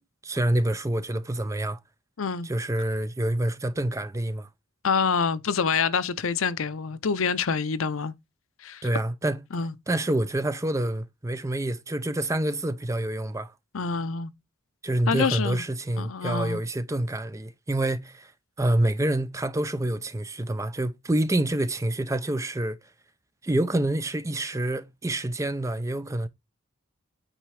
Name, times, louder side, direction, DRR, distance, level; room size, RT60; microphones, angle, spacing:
voice 1, 0.2-1.8 2.4-4.5 8.8-9.4 9.9-13.5 14.8-18.3 18.6-22.8 23.4-26.3, right 1 dB, 15° right, 0.5 m, -27 dB
voice 2, 2.2-2.5 4.8-8.1 8.6-8.8 9.5-9.7 13.7-14.3 15.1-15.6 16.0-16.6, left 5 dB, 70° left, 0.6 m, -26 dB
9.0 x 4.2 x 4.8 m
head